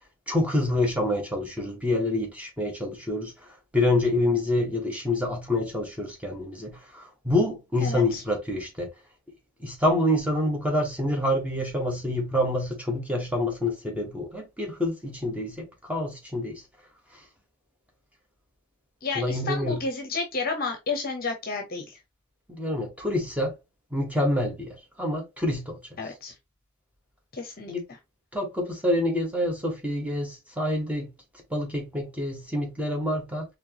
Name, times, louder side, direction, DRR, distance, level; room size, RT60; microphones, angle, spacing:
voice 1, 0.3-3.3 3.7-8.9 9.6-16.6 19.1-19.8 22.5-23.5 23.9-24.7 25.0-25.8 27.7-27.8 28.3-31.1 31.5-33.5, left 1 dB, 5° right, 1.2 m, -27 dB
voice 2, 7.8-8.2 19.0-22.0 26.0-26.3 27.3-28.0, left 4 dB, 40° left, 0.8 m, -31 dB
4.5 x 3.3 x 2.9 m
head